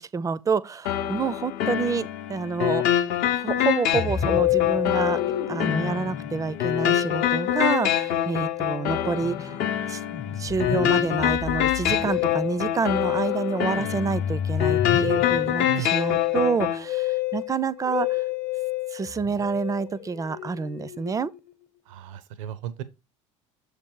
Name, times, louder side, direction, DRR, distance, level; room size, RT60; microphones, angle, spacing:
voice 1, 0.0-2.8 3.4-5.2 5.5-9.6 9.9-10.0 10.4-18.2 18.9-21.3, right 5 dB, 20° right, 0.4 m, -28 dB
sound 1, 0.9-16.8, left 11 dB, 60° left, 0.7 m, -26 dB
Musical instrument, 3.9-21.5, left 13 dB, 45° left, 1.0 m, -29 dB
voice 2, 21.9-22.8, right 12 dB, 75° right, 0.6 m, -34 dB
6.7 x 3.3 x 4.6 m
hypercardioid pair, 75°, 17 cm